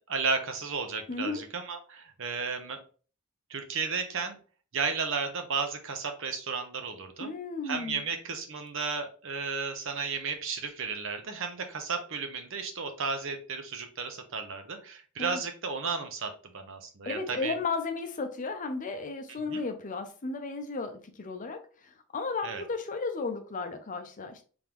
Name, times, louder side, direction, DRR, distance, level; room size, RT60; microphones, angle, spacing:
voice 1, 0.1-2.8 3.5-4.4 4.7-7.3 7.6-17.5 19.5-19.6 22.4-22.6, right 5 dB, 65° right, 0.8 m, -33 dB
voice 2, 1.1-1.4 7.2-8.0 15.2-15.4 17.1-24.4, left 4 dB, 40° left, 0.6 m, -34 dB
3.7 x 3.5 x 3.0 m
head